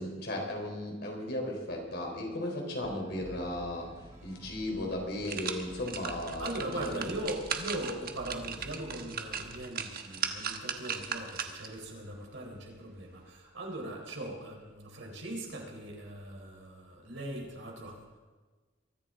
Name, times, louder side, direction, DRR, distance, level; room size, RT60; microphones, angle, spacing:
voice 1, 0.0-3.9 4.2-7.0, left 1 dB, 60° left, 1 dB, 3.9 m, -36 dB
sound 1, 2.8-9.5, equal, 15° right, 2.8 m, -50 dB
sound 2, 4.4-4.5 4.9-11.8 12.2-12.3, right 7 dB, 50° right, 1.2 m, -38 dB
voice 2, 6.4-18.2, right 1 dB, 80° right, 0 dB, 4.0 m, -40 dB
23.0 x 14.0 x 3.8 m, 1.4 s
head